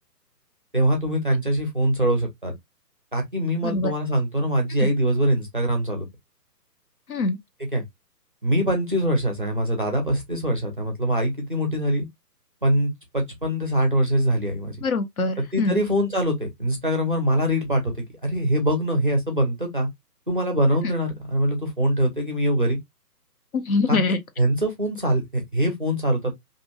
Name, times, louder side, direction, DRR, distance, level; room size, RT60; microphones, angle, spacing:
voice 1, 0.7-2.5 3.1-6.1 7.7-7.8 8.4-12.1 12.6-14.8 15.5-19.9 20.3-22.8 23.9-26.3, equal, 35° right, 0.4 m, -23 dB
voice 2, 14.8-15.8 23.5-24.2, left 3 dB, 60° left, 0.6 m, -23 dB
2.5 x 2.1 x 2.6 m
figure-of-eight pair, 140°, 49 cm